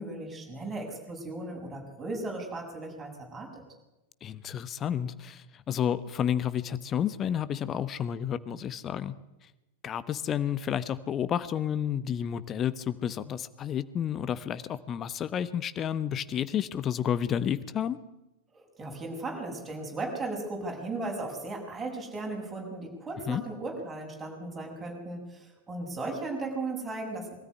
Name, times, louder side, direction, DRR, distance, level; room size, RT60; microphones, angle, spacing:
voice 1, 0.0-3.6 18.5-27.3, right 2 dB, 15° right, -1 dB, 6.8 m, -36 dB
voice 2, 4.2-9.1 9.8-18.0 23.3-23.4, left 9 dB, 30° left, 15 dB, 1.0 m, -31 dB
23.5 x 13.5 x 9.7 m, 0.99 s
figure-of-eight pair, 90°, 0 cm